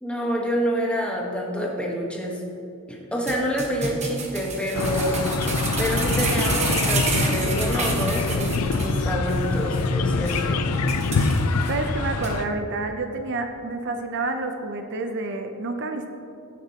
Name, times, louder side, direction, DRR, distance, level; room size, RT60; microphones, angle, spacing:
voice 1, 0.0-2.4 2.9-5.2 5.8-10.6, equal, 5° left, -2 dB, 1.2 m, -27 dB
sound 1, 3.3-9.0 9.3-9.4 9.8-9.9 10.3-10.4 10.9-11.7 12.2-12.3, right 3 dB, 30° right, 1.1 m, -29 dB
sound 2, 4.7-12.4, left 3 dB, 90° left, 0.6 m, -24 dB
voice 2, 11.7-16.1, right 3 dB, 55° right, 6 dB, 0.6 m, -29 dB
15.5 x 6.8 x 2.9 m, 2.6 s
head